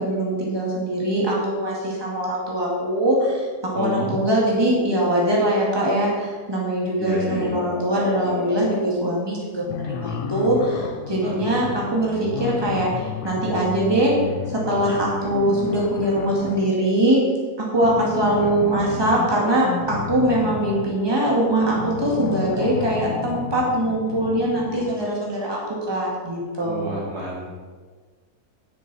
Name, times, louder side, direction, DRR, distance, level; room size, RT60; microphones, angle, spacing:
voice 1, 0.0-3.5 3.7-14.2 14.5-17.2 17.6-25.6 25.9-27.0, right 1 dB, 15° right, -4 dB, 2.3 m, -22 dB
voice 2, 3.7-4.2 7.0-7.5 11.2-11.6 26.6-27.6, equal, 75° right, -6 dB, 3.8 m, -30 dB
sound 1, 7.3-9.0 9.6-16.8 17.7-25.2, left 7 dB, 90° left, 1.2 m, -32 dB
10.5 x 9.4 x 4.3 m, 1.4 s
omnidirectional pair, 1.7 m